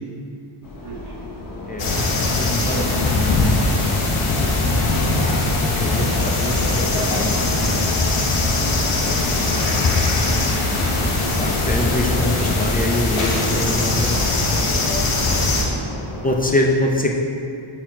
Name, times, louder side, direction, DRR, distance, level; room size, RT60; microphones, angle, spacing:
sound 1, 0.6-16.6, left 2 dB, 45° left, 1.0 m, -34 dB
voice 1, 0.8-5.0 14.2-14.4 15.3-16.2, right 4 dB, 90° right, -5 dB, 1.4 m, -43 dB
sound 2, 1.8-15.6, left 2 dB, 85° left, 1.0 m, -20 dB
voice 2, 2.4-2.8 3.6-4.0 5.6-7.4 9.5-9.8 11.0-11.1 11.4-14.3 16.2-17.2, left 1 dB, 20° left, 0 dB, 0.6 m, -24 dB
5.8 x 4.4 x 4.5 m, 2.5 s
cardioid pair, 75°, 49 cm